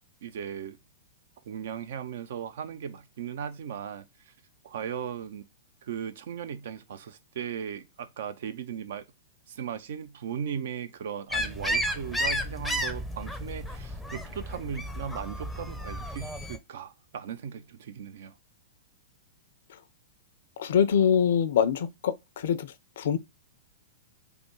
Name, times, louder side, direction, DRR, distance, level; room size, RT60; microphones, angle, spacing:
voice 1, 0.2-0.8 1.5-4.3 4.6-5.4 5.8-9.0 9.5-18.3, right 8 dB, 60° right, 0.5 m, -37 dB
sound 1, 11.3-16.6, equal, 5° left, 0.5 m, -32 dB
voice 2, 20.6-23.2, left 8 dB, 60° left, 0.4 m, -24 dB
3.3 x 2.1 x 3.0 m
figure-of-eight pair, 105°, 0 cm